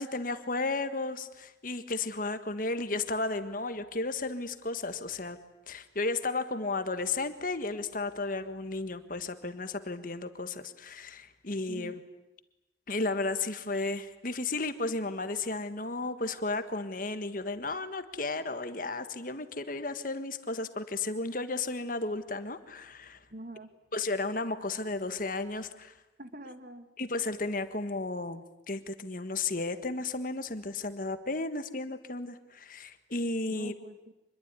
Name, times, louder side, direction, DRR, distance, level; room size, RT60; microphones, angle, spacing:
voice 1, 0.0-5.4 5.7-12.0 12.9-23.2 23.9-25.9 27.0-33.7, left 3 dB, 45° left, 10 dB, 1.6 m, -34 dB
voice 2, 23.3-23.7 26.2-26.9 33.5-34.1, right 1 dB, 50° right, 9 dB, 2.0 m, -45 dB
26.0 x 22.0 x 9.7 m, 0.95 s
head